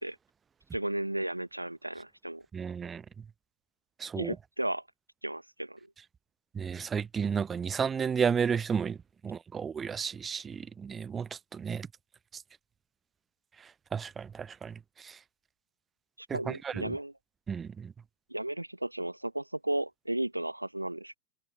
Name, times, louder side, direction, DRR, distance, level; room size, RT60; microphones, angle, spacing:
voice 1, 0.7-2.5 4.2-4.8 5.2-5.8 16.2-17.1 18.3-21.2, right 1 dB, 85° right, 0.6 m, -34 dB
voice 2, 2.5-3.0 4.0-4.3 6.6-9.0 9.2-11.9 13.9-14.7 15.0-15.1 16.3-16.9 17.5-17.9, right 6 dB, 20° right, 0.7 m, -32 dB
figure-of-eight pair, 90°, 0 cm